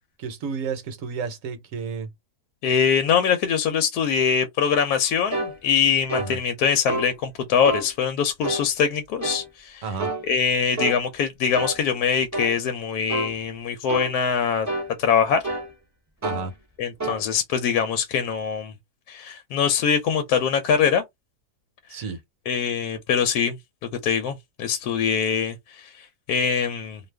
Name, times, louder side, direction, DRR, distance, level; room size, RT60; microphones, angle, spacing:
voice 1, 0.2-2.1 6.2-6.4 9.8-10.1 16.2-16.5 21.9-22.2, right 5 dB, 65° right, 1.1 m, -31 dB
voice 2, 2.6-9.8 10.2-14.7 15.0-15.4 16.8-18.7 19.1-21.0 21.9-22.0 22.5-23.6 24.0-27.0, left 7 dB, 80° left, 1.1 m, -23 dB
sound 1, 5.3-5.5 6.1-6.3 6.9-7.1 7.6-7.9 8.4-8.7 9.2-9.5 10.0-10.2 10.8-11.0 11.5-11.8 12.3-12.6 13.1-13.3 13.9-14.1 14.7-14.9 15.4-15.7 16.2-16.5 17.0-17.2, right 2 dB, 20° right, 0.4 m, -28 dB
2.6 x 2.3 x 3.2 m
omnidirectional pair, 1.7 m